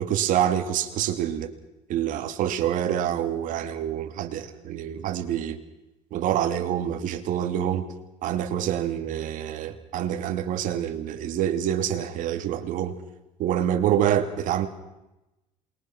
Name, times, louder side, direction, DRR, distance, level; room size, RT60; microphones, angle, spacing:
voice 1, 0.0-1.5 1.9-5.6 6.1-7.9 8.2-12.9 13.4-14.7, right 10 dB, 65° right, 2.9 m, -26 dB
27.5 x 22.5 x 6.2 m
cardioid pair, 100°, 14 cm